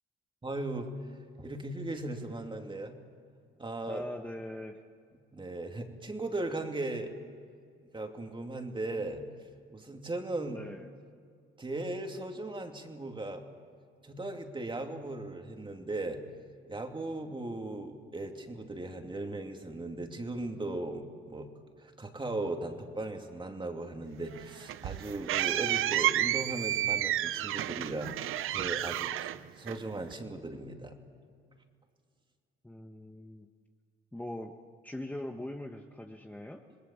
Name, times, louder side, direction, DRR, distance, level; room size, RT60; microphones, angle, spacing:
voice 1, 0.4-0.9 1.4-3.0 3.6-4.0 5.3-7.1 7.9-9.2 9.7-10.6 11.6-13.4 14.0-16.2 16.7-21.5 21.8-29.3 29.6-31.0, right 2 dB, 25° right, 4 dB, 2.8 m, -37 dB
voice 2, 3.9-4.8 10.5-10.9 32.6-33.5 34.1-34.5 34.8-36.6, left 1 dB, 5° left, 3 dB, 1.2 m, -41 dB
sound 1, 24.3-30.1, right 13 dB, 80° right, 0.7 m, -31 dB
27.0 x 20.0 x 7.3 m, 2.1 s
cardioid pair, 85°, 21 cm